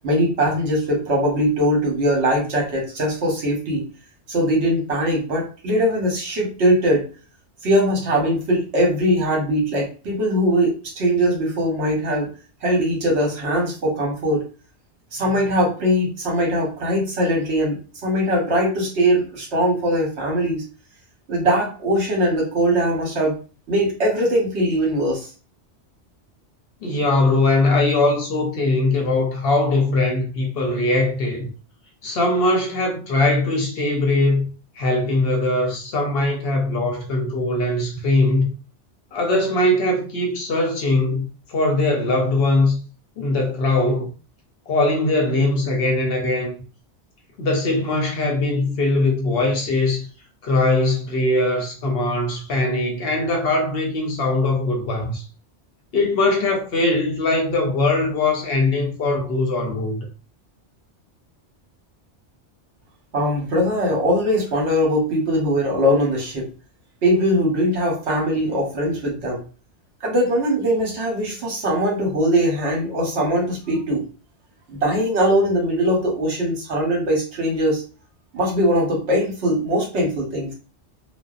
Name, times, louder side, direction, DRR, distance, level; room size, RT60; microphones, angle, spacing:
voice 1, 0.0-3.8 4.3-7.0 7.6-12.3 12.6-14.4 15.1-20.6 21.3-23.4 23.7-25.3 63.1-66.5 67.0-69.4 70.0-74.1 74.7-77.8 78.3-80.5, equal, 70° right, 1.1 m, -21 dB
voice 2, 26.8-31.5 32.0-34.5 34.8-38.5 39.1-42.8 43.2-44.1 44.7-46.5 47.4-50.1 50.4-55.2 55.9-60.1, left 2 dB, 65° left, 0.7 m, -21 dB
2.5 x 2.1 x 2.3 m
omnidirectional pair, 1.2 m